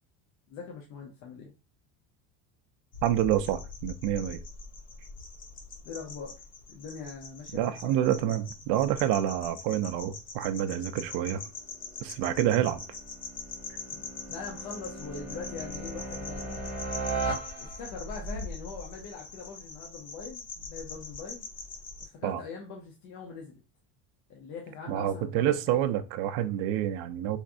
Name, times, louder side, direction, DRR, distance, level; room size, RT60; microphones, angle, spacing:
voice 1, 0.5-1.5 5.8-6.4 6.7-8.4 12.3-12.5 13.9-14.0 14.3-16.9 17.6-21.4 22.0-23.6 24.3-25.8, left 5 dB, 50° left, 0.7 m, -42 dB
sound 1, 2.9-22.1, left 4 dB, 25° left, 0.3 m, -43 dB
voice 2, 3.0-4.4 7.5-11.4 12.0-12.8 22.2-22.4 24.9-27.4, right 11 dB, 85° right, 0.5 m, -28 dB
sound 2, 11.7-18.1, right 3 dB, 5° right, 1.1 m, -38 dB
3.5 x 3.1 x 2.5 m
cardioid pair, 175°, 39 cm